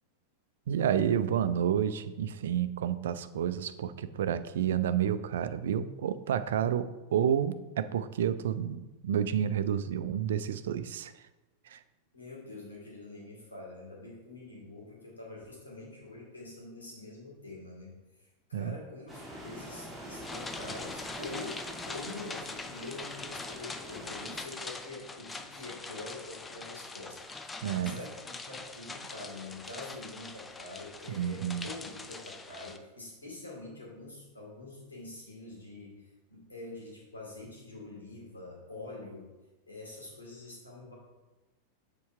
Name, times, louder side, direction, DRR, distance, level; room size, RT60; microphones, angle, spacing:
voice 1, 0.7-11.1 11.7-11.8 18.5-18.7 27.6-28.0 31.2-31.7, right 9 dB, 60° right, 13 dB, 0.4 m, -30 dB
voice 2, 12.1-17.9 18.2-39.3 39.7-40.9, left 2 dB, 75° left, -3 dB, 2.6 m, -45 dB
sound 1, 19.1-24.4, equal, ahead, 1.7 m, -45 dB
sound 2, 20.2-32.8, left 3 dB, 15° left, 0.5 m, -43 dB
6.9 x 4.6 x 4.7 m, 1.1 s
figure-of-eight pair, 90°, 0 cm